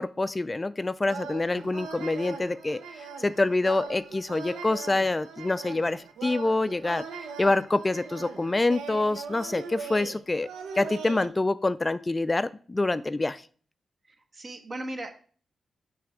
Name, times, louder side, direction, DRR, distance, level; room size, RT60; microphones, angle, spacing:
voice 1, 0.0-7.0 7.4-10.5 10.8-13.4, left 2 dB, 30° left, 15 dB, 0.3 m, -26 dB
sound 1, 1.0-11.3, right 5 dB, 85° right, 0.6 m, -40 dB
voice 2, 1.5-1.9 14.3-15.3, right 1 dB, 45° right, 5 dB, 1.2 m, -38 dB
6.0 x 3.2 x 4.8 m, 0.43 s
supercardioid pair, 40°, 0 cm